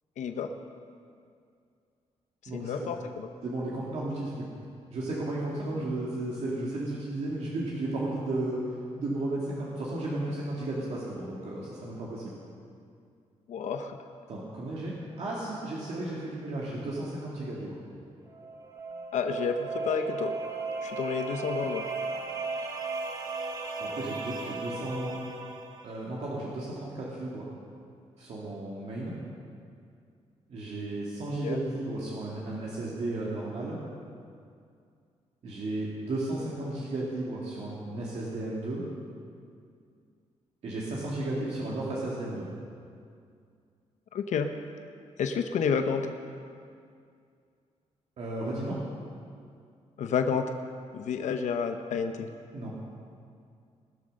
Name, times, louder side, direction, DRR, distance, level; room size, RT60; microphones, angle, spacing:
voice 1, 0.2-0.5 2.5-3.3 13.5-14.0 19.1-20.4 20.8-21.9 31.4-31.6 44.1-44.5 45.2-46.1 50.0-50.5 50.9-52.3, left 6 dB, 75° left, 6 dB, 0.8 m, -30 dB
voice 2, 2.5-2.9 3.4-4.4 4.9-12.3 14.3-17.8 23.8-25.2 25.8-27.5 28.2-29.1 30.5-33.8 35.4-38.8 40.6-42.5 48.2-48.8 52.5-52.7, right 2 dB, 60° right, -5 dB, 2.3 m, -34 dB
sound 1, 18.3-26.0, right 3 dB, 30° right, 1.3 m, -36 dB
19.5 x 7.8 x 6.5 m, 2.3 s
wide cardioid pair, 140°, 12 cm